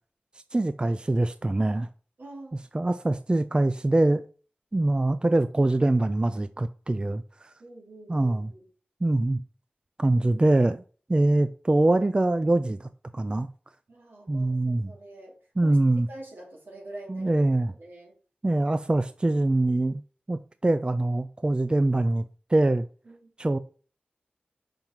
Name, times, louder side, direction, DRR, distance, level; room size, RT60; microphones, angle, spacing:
voice 1, 0.5-1.9 2.7-4.2 4.7-7.2 8.1-8.5 9.0-9.4 10.0-10.8 11.1-13.5 14.3-14.9 15.6-16.1 17.1-17.7 18.4-20.0 20.3-22.2 22.5-22.9 23.4-23.6, right 2 dB, 30° right, 0.4 m, -23 dB
voice 2, 2.2-2.7 7.6-8.7 13.9-15.4 15.6-17.3 17.8-18.2 23.0-23.3, right 1 dB, 85° right, 2.7 m, -45 dB
5.6 x 5.2 x 4.5 m
wide cardioid pair, 60°, 3 cm